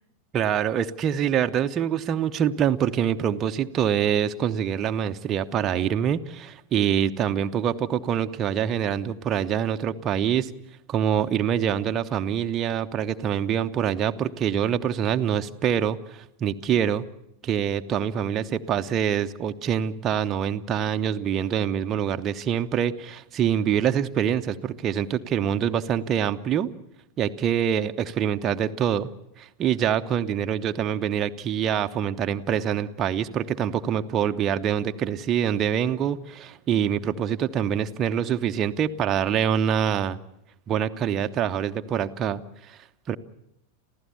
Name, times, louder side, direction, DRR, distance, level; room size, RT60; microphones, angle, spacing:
voice 1, 0.3-10.5 10.9-17.0 17.4-26.7 27.2-29.1 29.4-40.2 40.7-42.4 42.7-43.2, right 9 dB, 30° right, 7 dB, 0.8 m, -25 dB
28.5 x 15.5 x 7.0 m, 0.84 s
figure-of-eight pair, 90°, 0 cm